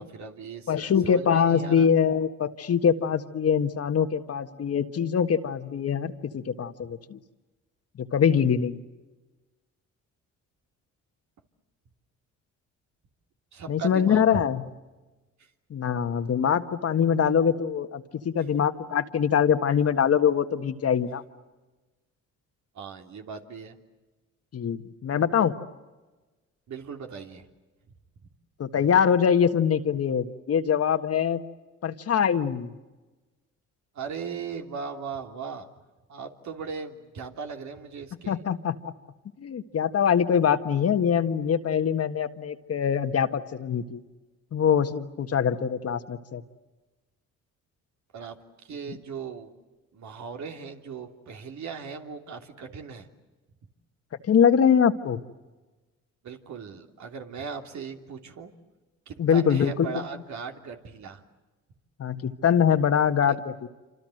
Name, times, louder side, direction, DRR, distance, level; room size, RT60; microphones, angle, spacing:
voice 1, 0.0-1.9 13.5-14.4 15.4-15.5 22.7-23.8 26.7-27.4 33.9-35.7 36.1-38.4 48.1-49.5 49.9-53.1 56.2-58.5 59.1-61.2 63.3-63.4, right 5 dB, 65° right, 4 dB, 3.2 m, -38 dB
voice 2, 0.7-7.2 8.0-8.8 13.7-14.6 15.7-21.2 24.5-25.6 28.6-31.4 31.8-32.7 38.3-38.9 39.4-44.0 44.5-46.4 54.3-55.2 59.2-59.9 62.0-63.7, left 7 dB, 55° left, 8 dB, 1.6 m, -23 dB
27.5 x 26.0 x 7.9 m, 1.2 s
cardioid pair, 90°, 30 cm